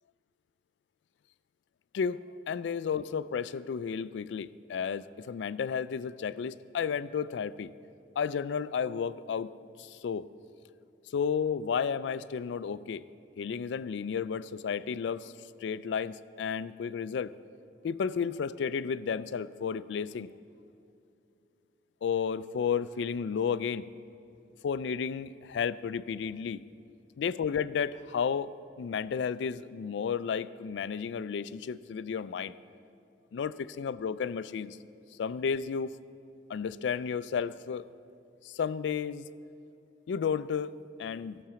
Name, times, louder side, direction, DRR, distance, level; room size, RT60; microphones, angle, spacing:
voice 1, 2.5-7.7 8.2-9.5 9.8-10.3 11.1-13.0 13.4-15.3 15.6-17.3 17.8-20.3 22.0-23.9 24.6-26.6 27.2-32.6 33.3-34.8 35.2-35.9 36.5-37.8 38.4-39.3 40.1-41.5, left 6 dB, 75° left, 17 dB, 0.3 m, -32 dB
14.5 x 5.9 x 6.9 m, 2.6 s
head